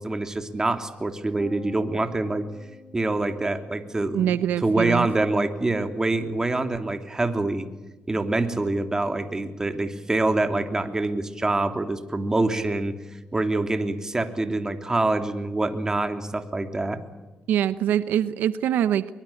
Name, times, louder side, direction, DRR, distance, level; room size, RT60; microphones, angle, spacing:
voice 1, 0.0-2.5 2.9-7.7 8.1-12.9 13.3-17.0, right 2 dB, 20° right, 7 dB, 3.1 m, -25 dB
sound 1, 1.4-10.9, left 3 dB, 45° left, 5.7 m, -52 dB
voice 2, 4.1-5.1 17.5-19.1, right 10 dB, 85° right, 14 dB, 0.9 m, -23 dB
23.0 x 22.5 x 8.6 m, 1.1 s
cardioid pair, 80°, 3 cm